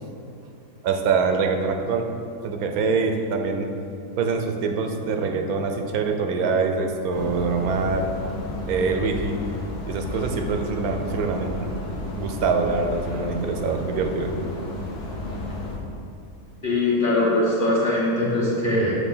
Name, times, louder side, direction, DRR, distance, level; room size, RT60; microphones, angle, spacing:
voice 1, 0.8-2.0 2.4-3.7 4.2-8.1 8.7-9.4 9.9-11.7 12.2-14.3, right 4 dB, 90° right, 4 dB, 1.1 m, -24 dB
sound 1, 7.1-15.8, left 2 dB, 60° left, 1.1 m, -32 dB
voice 2, 16.6-19.0, left 2 dB, 35° left, -7 dB, 1.4 m, -21 dB
6.6 x 2.8 x 5.4 m, 2.6 s
omnidirectional pair, 1.5 m